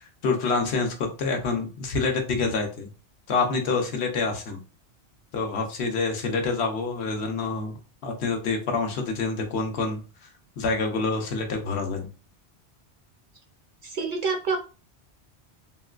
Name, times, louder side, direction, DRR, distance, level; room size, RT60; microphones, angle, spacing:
voice 1, 0.2-2.9 3.3-4.6 5.3-10.0 10.6-12.1, left 4 dB, 75° left, 3 dB, 1.0 m, -27 dB
voice 2, 13.8-14.6, right 4 dB, 55° right, 4 dB, 0.6 m, -27 dB
3.7 x 2.1 x 2.3 m, 0.34 s
omnidirectional pair, 1.1 m